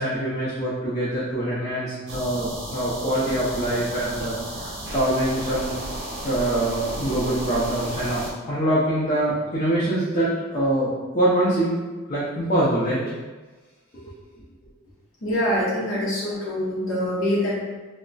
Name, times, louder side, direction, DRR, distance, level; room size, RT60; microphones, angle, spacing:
voice 1, 0.0-5.7 6.2-11.8 12.1-13.0, right 1 dB, 35° left, -10 dB, 0.6 m, -24 dB
sound 1, 2.1-8.3, right 1 dB, 65° right, 0.7 m, -33 dB
voice 2, 15.2-17.6, left 1 dB, 75° left, -7 dB, 0.8 m, -24 dB
2.3 x 2.1 x 3.8 m, 1.3 s
head